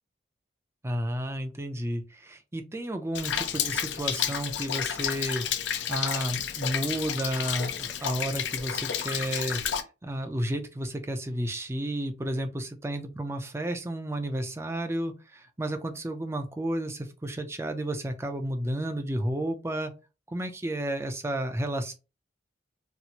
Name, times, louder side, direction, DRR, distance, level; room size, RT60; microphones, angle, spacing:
voice 1, 0.8-5.5 5.9-19.9 20.3-21.9, right 1 dB, 15° right, 6 dB, 0.4 m, -32 dB
Rain, 3.1-9.8, left 9 dB, 80° left, 0.5 m, -31 dB
4.2 x 2.0 x 2.8 m, 0.29 s
head